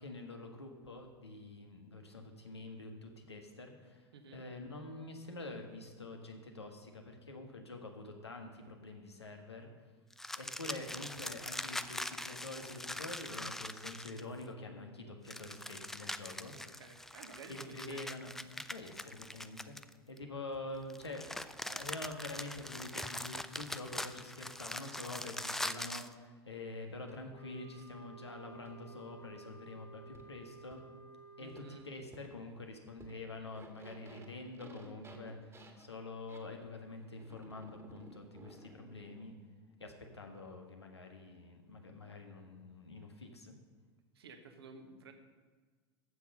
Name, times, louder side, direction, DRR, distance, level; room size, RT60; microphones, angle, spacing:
voice 1, 0.0-9.7 10.4-16.5 17.5-19.8 20.1-30.8 31.4-39.3 39.8-43.5, left 2 dB, 85° left, 3 dB, 1.4 m, -46 dB
sound 1, 10.1-14.4 15.3-20.2 20.9-26.1, left 1 dB, 5° left, 0.4 m, -42 dB
voice 2, 16.5-18.0 31.4-31.9 44.1-45.1, right 4 dB, 70° right, 6 dB, 1.3 m, -53 dB
sound 2, 20.5-24.9 25.7-25.8 27.1-27.2 27.8-27.9 28.7-28.8 30.1-30.2 30.7-30.8 31.6-31.7 32.1-32.3 33.0-33.1 33.4-36.4 37.2-39.3, right 2 dB, 20° right, 1.7 m, -56 dB
sound 3, 27.3-32.2, right 4 dB, 40° left, 1.4 m, -55 dB
14.5 x 6.0 x 5.4 m, 1.4 s
figure-of-eight pair, 85°, 14 cm